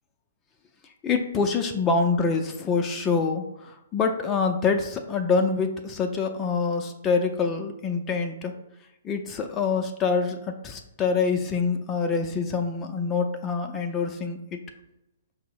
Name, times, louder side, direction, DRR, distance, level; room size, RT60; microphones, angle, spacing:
voice 1, 1.0-8.5 9.0-14.6, left 5 dB, 20° left, 4 dB, 0.4 m, -26 dB
5.2 x 2.0 x 4.6 m, 0.89 s
hypercardioid pair, 130°, 0 cm